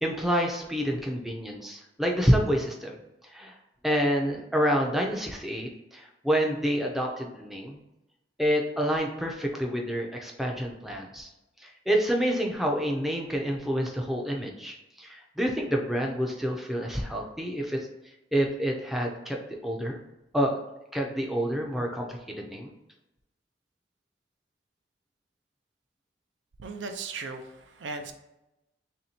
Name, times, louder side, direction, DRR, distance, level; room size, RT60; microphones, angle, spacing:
voice 1, 0.0-3.0 3.2-3.5 3.8-7.8 8.4-11.3 11.6-17.8 18.3-20.0 20.3-20.5 20.9-22.7, equal, ahead, 0 dB, 0.4 m, -28 dB
voice 2, 26.6-28.1, right 4 dB, 80° right, 6 dB, 0.4 m, -37 dB
3.1 x 2.7 x 4.3 m, 0.93 s
head